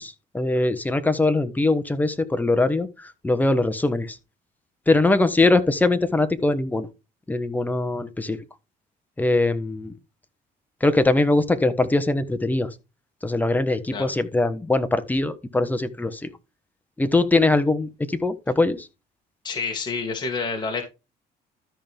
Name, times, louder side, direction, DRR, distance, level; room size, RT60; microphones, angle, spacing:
voice 1, 0.0-4.2 4.9-6.9 7.3-8.4 9.2-9.9 10.8-12.7 13.2-16.3 17.0-18.9, left 2 dB, 10° left, 1.2 m, -22 dB
voice 2, 19.4-20.9, left 4 dB, 25° left, 2.3 m, -28 dB
13.0 x 5.4 x 3.5 m
cardioid pair, 110°, 17 cm